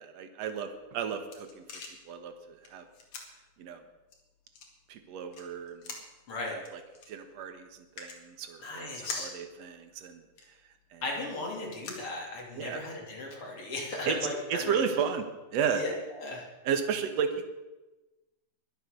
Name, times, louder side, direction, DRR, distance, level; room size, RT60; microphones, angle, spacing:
voice 1, 0.0-1.6 2.1-2.9 3.6-3.8 4.9-5.9 6.5-6.8 7.1-10.2 10.9-11.0 12.6-12.8 14.1-14.2 14.5-15.8 16.6-17.5, right 7 dB, 65° right, 8 dB, 2.4 m, -33 dB
sound 1, 0.7-12.8, left 4 dB, 65° left, 3.4 m, -48 dB
voice 2, 8.6-9.3 11.0-14.8 15.7-16.5, left 2 dB, 45° left, -1 dB, 3.8 m, -36 dB
22.5 x 8.0 x 6.7 m, 1.1 s
omnidirectional pair, 3.5 m